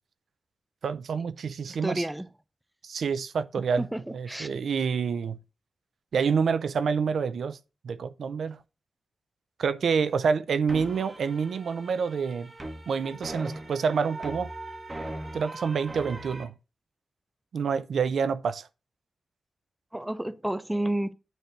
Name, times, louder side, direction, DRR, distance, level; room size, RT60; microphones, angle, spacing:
voice 1, 0.8-2.0 2.8-5.4 6.1-7.6 7.8-8.6 9.6-12.5 12.9-14.5 15.3-16.5 17.5-18.7, right 6 dB, 75° right, 0.4 m, -27 dB
voice 2, 1.7-2.3 3.8-4.5 19.9-21.1, right 1 dB, 5° right, 0.5 m, -30 dB
sound 1, 10.7-16.4, right 1 dB, 25° right, 1.3 m, -40 dB
9.1 x 3.2 x 6.5 m
wide cardioid pair, 130°, 0 cm